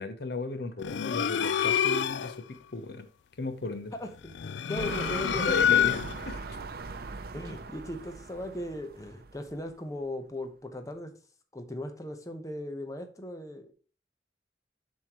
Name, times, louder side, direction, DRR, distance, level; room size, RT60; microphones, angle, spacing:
voice 1, 0.0-3.1 3.4-3.9 5.3-6.6, left 3 dB, 60° left, 0.8 m, -35 dB
sound 1, 0.8-2.4 4.3-6.3, left 9 dB, 85° left, 0.4 m, -27 dB
voice 2, 4.0-4.3 4.7-5.9 7.3-11.1 11.5-13.7, left 1 dB, 20° left, 0.9 m, -38 dB
sound 2, 4.7-9.7 10.4-10.5, right 4 dB, 55° right, 0.6 m, -41 dB
7.5 x 6.4 x 3.0 m
head